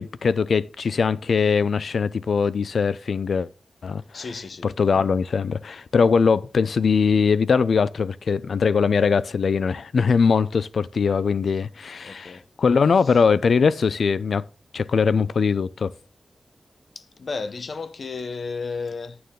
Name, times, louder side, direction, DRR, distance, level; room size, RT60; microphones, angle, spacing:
voice 1, 0.0-3.5 3.8-4.2 4.6-14.4 14.7-15.9, left 5 dB, 75° left, 0.4 m, -21 dB
voice 2, 4.1-4.7 12.0-12.4 13.0-13.2 16.9-19.2, left 4 dB, 60° left, 0.8 m, -33 dB
9.3 x 6.9 x 3.5 m
wide cardioid pair, 120°, 0 cm